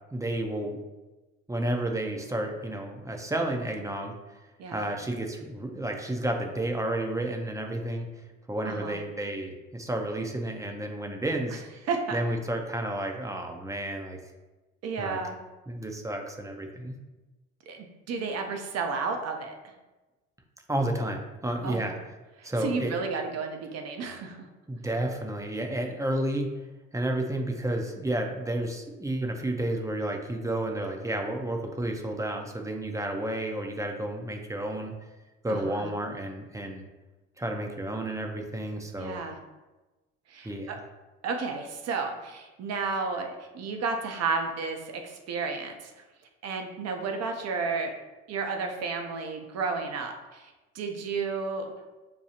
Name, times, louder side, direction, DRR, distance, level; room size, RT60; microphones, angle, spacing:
voice 1, 0.1-0.8 1.5-4.4 4.7-8.1 8.5-11.6 12.1-14.2 15.0-15.2 15.7-16.9 20.7-22.0 22.4-23.1 24.7-26.5 26.9-34.9 35.4-36.9 37.4-39.2 40.4-40.8, right 1 dB, 10° right, 3 dB, 0.7 m, -31 dB
voice 2, 8.7-9.0 11.9-12.2 14.8-15.4 17.7-19.5 21.6-21.9 22.4-24.4 35.5-35.9 39.0-39.4 40.3-40.8 41.2-46.0 46.4-47.9 48.3-51.7, right 4 dB, 55° right, 4 dB, 0.8 m, -32 dB
6.9 x 2.3 x 2.8 m, 1.1 s
hypercardioid pair, 70°, 31 cm